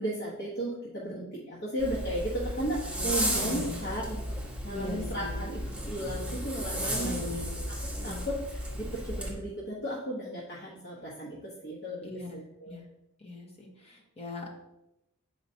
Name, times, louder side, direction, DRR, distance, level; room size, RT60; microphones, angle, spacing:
voice 1, 0.0-4.2 4.6-7.1 8.0-12.1 12.3-12.8, right 1 dB, 50° left, -7 dB, 1.3 m, -35 dB
Zipper (clothing), 1.8-9.3, right 1 dB, 5° right, 1.5 m, -34 dB
voice 2, 3.4-3.8 4.7-5.4 7.0-7.6 8.0-8.2 12.0-12.4 12.7-12.8 13.2-14.5, left 2 dB, 30° left, -2 dB, 1.3 m, -39 dB
7.8 x 4.9 x 2.8 m, 0.87 s
head